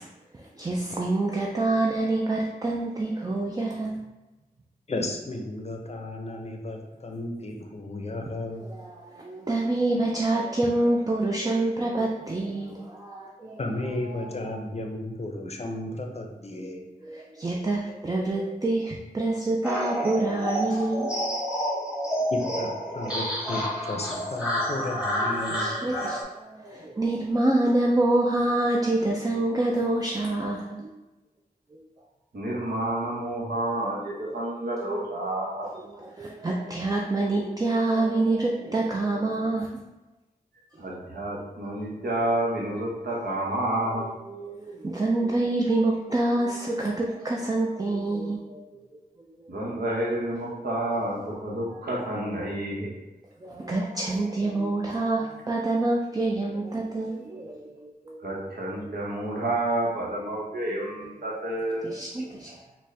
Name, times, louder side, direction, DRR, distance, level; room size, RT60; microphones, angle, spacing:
voice 1, 0.4-4.0 8.5-13.6 14.2-14.6 16.6-21.1 25.3-30.9 34.2-34.4 35.6-39.7 43.8-48.8 51.1-51.4 53.4-58.8 61.8-62.6, right 2 dB, 25° right, -1 dB, 0.4 m, -27 dB
voice 2, 4.9-8.7 13.6-16.8 22.3-26.1, left 1 dB, 40° left, 3 dB, 0.6 m, -34 dB
sound 1, 19.6-26.2, equal, 5° right, 1.2 m, -29 dB
voice 3, 32.3-35.7 40.8-44.1 49.5-52.9 58.2-61.9, right 1 dB, 75° right, -4 dB, 1.0 m, -29 dB
4.1 x 2.2 x 3.3 m, 1.1 s
wide cardioid pair, 65°, 16 cm